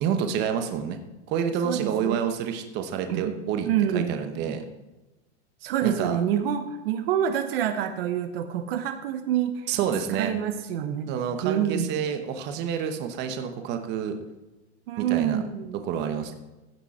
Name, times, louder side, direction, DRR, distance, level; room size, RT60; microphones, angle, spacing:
voice 1, 0.0-1.0 1.3-4.6 5.8-6.2 9.7-10.3 11.1-14.1 15.0-15.4 15.7-16.4, right 8 dB, 30° right, 7 dB, 1.0 m, -28 dB
voice 2, 1.6-2.3 3.1-3.3 3.7-4.2 5.6-9.7 10.2-11.2 11.4-11.9 14.9-15.8, right 10 dB, 60° right, 9 dB, 0.9 m, -27 dB
15.5 x 6.0 x 4.3 m, 1.1 s
supercardioid pair, 155°, 33 cm